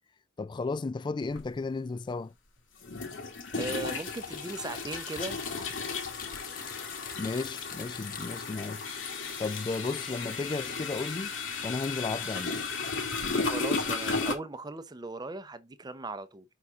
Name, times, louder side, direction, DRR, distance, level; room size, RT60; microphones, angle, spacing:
voice 1, 0.4-2.3 7.2-8.8 9.4-11.3 11.6-12.6, left 3 dB, 25° left, 0.3 m, -34 dB
sound 1, 1.3-1.4 2.8-14.3, left 4 dB, 80° left, 2.0 m, -34 dB
voice 2, 3.5-5.4 13.4-16.4, right 2 dB, 20° right, 0.7 m, -38 dB
Typing, 3.7-8.6, left 7 dB, 45° left, 1.1 m, -47 dB
5.8 x 4.7 x 3.6 m
head